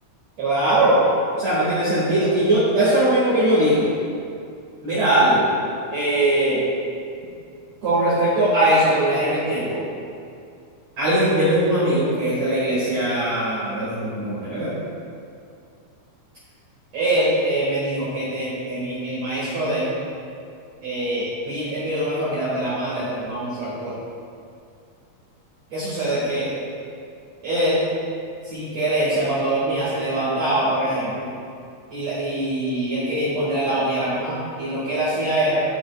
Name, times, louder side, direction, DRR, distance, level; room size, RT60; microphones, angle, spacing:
voice 1, 0.4-1.0 1.4-3.9 4.8-5.4 5.9-6.6 7.8-9.8 11.0-14.7 16.9-19.9 20.8-23.9 25.7-26.5 27.4-27.8 28.4-31.3 31.9-35.6, right 1 dB, 55° right, -11 dB, 2.8 m, -22 dB
10.5 x 7.0 x 2.3 m, 2.4 s
omnidirectional pair, 3.6 m